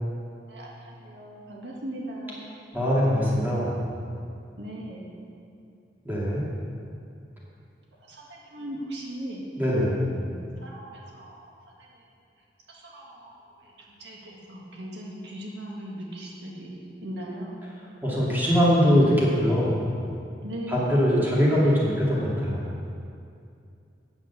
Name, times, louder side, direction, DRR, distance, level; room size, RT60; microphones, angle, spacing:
voice 1, 0.5-2.5 4.6-5.0 8.0-9.4 10.0-10.3 10.6-12.0 12.7-16.7 17.0-17.5 20.4-21.0, right 1 dB, 80° right, -3 dB, 1.7 m, -39 dB
voice 2, 2.7-3.8 6.0-6.4 9.6-10.0 18.0-19.8 20.7-22.7, equal, 10° right, -7 dB, 2.3 m, -22 dB
8.8 x 7.2 x 6.9 m, 2.5 s
head